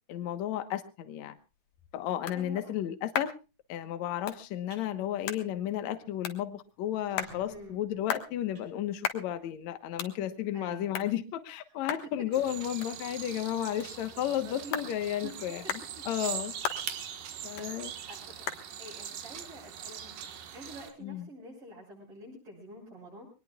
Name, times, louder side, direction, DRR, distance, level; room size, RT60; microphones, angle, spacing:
voice 1, 0.1-1.4 1.9-3.3 3.7-15.6 16.1-16.8 17.4-17.9 21.0-21.3, left 11 dB, 65° left, 8 dB, 2.3 m, -33 dB
sound 1, 1.4-20.7, left 8 dB, 85° left, 3.2 m, -42 dB
voice 2, 2.3-2.8 7.4-7.8 10.5-11.1 13.0-13.4 14.3-14.8 15.2-15.3 17.1-18.5 18.8-23.3, right 1 dB, 40° right, -5 dB, 8.1 m, -48 dB
sound 2, 4.7-4.9 5.3-5.6 5.9-6.0 6.2-6.3 6.9-9.4, right 2 dB, 60° right, 7.7 m, -56 dB
sound 3, 12.3-20.9, right 9 dB, 80° right, 3.1 m, -42 dB
24.5 x 20.0 x 2.3 m, 0.32 s
omnidirectional pair, 3.8 m